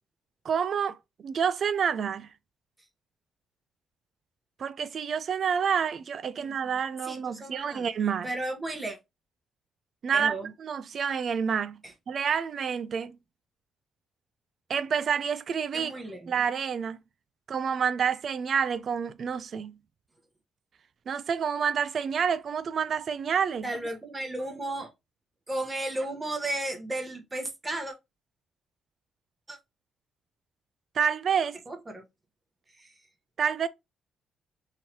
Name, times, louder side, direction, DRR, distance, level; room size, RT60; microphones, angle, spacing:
voice 1, 0.4-2.3 4.6-8.3 10.0-11.8 12.1-13.2 14.7-15.9 16.3-17.0 17.5-19.8 21.1-23.7 30.9-31.6 33.4-33.7, right 7 dB, 55° right, 0.4 m, -28 dB
voice 2, 7.0-7.9 8.2-9.0 10.1-10.5 11.8-11.9 15.7-16.3 23.6-24.9 25.5-27.9 29.5-29.6 31.7-32.0 32.7-33.0, right 1 dB, 20° right, 1.0 m, -34 dB
3.1 x 2.8 x 4.1 m
cardioid pair, 90°, 0 cm